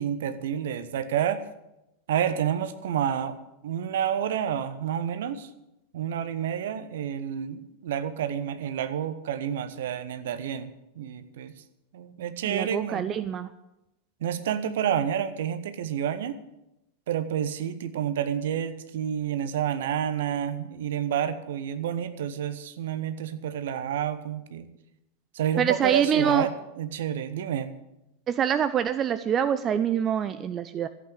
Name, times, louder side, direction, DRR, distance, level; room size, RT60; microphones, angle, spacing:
voice 1, 0.0-1.4 2.1-3.4 3.6-5.5 5.9-10.7 10.9-11.5 11.9-13.0 14.2-16.4 17.1-24.7 25.3-27.7, right 9 dB, 55° right, 12 dB, 1.0 m, -29 dB
voice 2, 12.5-13.5 25.6-26.5 28.3-30.9, right 8 dB, 25° right, 13 dB, 0.5 m, -25 dB
14.0 x 8.7 x 8.4 m, 0.91 s
figure-of-eight pair, 90°, 0 cm